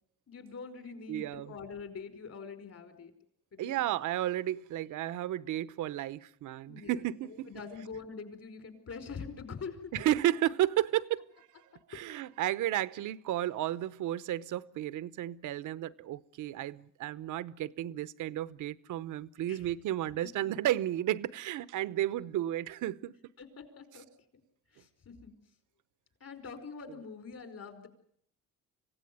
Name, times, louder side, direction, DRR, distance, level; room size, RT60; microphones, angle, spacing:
voice 1, 0.3-3.1 3.5-3.8 6.7-10.0 11.9-12.0 19.5-19.7 23.4-24.1 24.7-25.3 26.2-27.9, left 5 dB, 55° left, 5.0 m, -44 dB
voice 2, 1.1-1.5 3.6-7.5 9.9-11.5 11.9-23.1, right 13 dB, 80° right, 0.9 m, -33 dB
26.0 x 16.5 x 9.4 m
cardioid pair, 90°, 30 cm